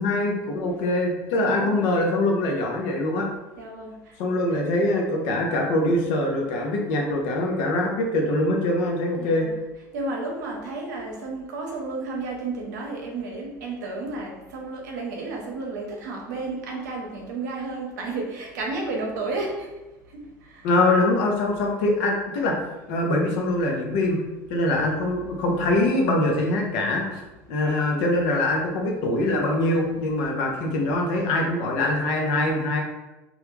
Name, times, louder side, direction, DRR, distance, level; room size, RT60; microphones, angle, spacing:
voice 1, 0.0-3.3 4.2-9.5 20.6-22.6 22.9-24.2 24.5-27.2 27.5-32.8, left 2 dB, 70° left, 1 dB, 0.6 m, -23 dB
voice 2, 1.4-1.9 3.6-4.1 9.1-9.6 9.9-19.7 20.1-20.7, right 3 dB, 85° right, 0 dB, 0.6 m, -32 dB
2.3 x 2.2 x 3.1 m, 1.1 s
hypercardioid pair, 85°, 9 cm